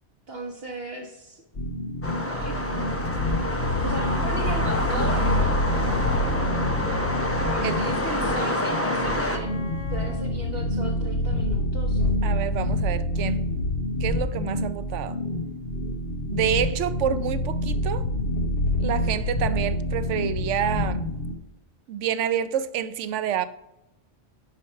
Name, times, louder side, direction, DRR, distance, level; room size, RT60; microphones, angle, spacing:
voice 1, 0.3-1.4 2.3-2.6 3.8-5.3 7.4-9.5 9.9-12.0, right 2 dB, 60° right, 1.2 m, -36 dB
sound 1, 1.5-21.3, left 1 dB, 55° left, 1.3 m, -27 dB
sound 2, 2.0-9.4, left 1 dB, 15° left, 0.7 m, -28 dB
Wind instrument woodwind instrument, 5.4-10.3, left 5 dB, 75° left, 2.3 m, -42 dB
voice 2, 12.2-13.5 14.0-15.2 16.3-18.1 18.8-21.1 21.9-23.5, right 9 dB, 90° right, 0.9 m, -28 dB
11.0 x 4.9 x 4.5 m
omnidirectional pair, 1.2 m